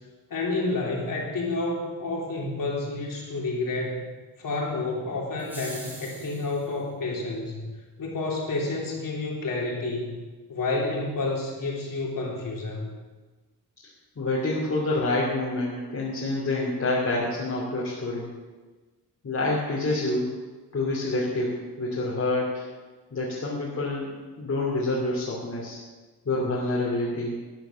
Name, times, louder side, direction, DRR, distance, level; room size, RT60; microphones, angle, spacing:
voice 1, 0.3-4.1 4.4-7.6 8.0-10.2 10.5-12.9, left 2 dB, 55° left, -2 dB, 3.6 m, -29 dB
sound 1, 5.4-6.7, right 1 dB, 5° right, 3.8 m, -42 dB
voice 2, 14.2-18.3 19.2-20.3 20.7-22.6 23.1-24.1 24.4-25.8 26.2-27.4, left 2 dB, 40° left, -5 dB, 2.9 m, -27 dB
12.5 x 9.2 x 7.0 m, 1.3 s
wide cardioid pair, 130°, 38 cm